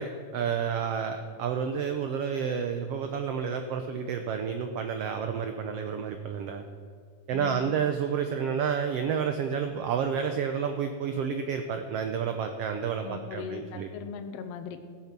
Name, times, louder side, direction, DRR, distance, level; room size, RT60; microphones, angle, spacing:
voice 1, 0.0-6.6 7.3-13.9, right 7 dB, 80° right, 6 dB, 1.4 m, -30 dB
voice 2, 7.3-7.7 13.0-14.8, left 7 dB, 70° left, 8 dB, 1.5 m, -39 dB
15.0 x 8.7 x 6.1 m, 2.1 s
omnidirectional pair, 3.6 m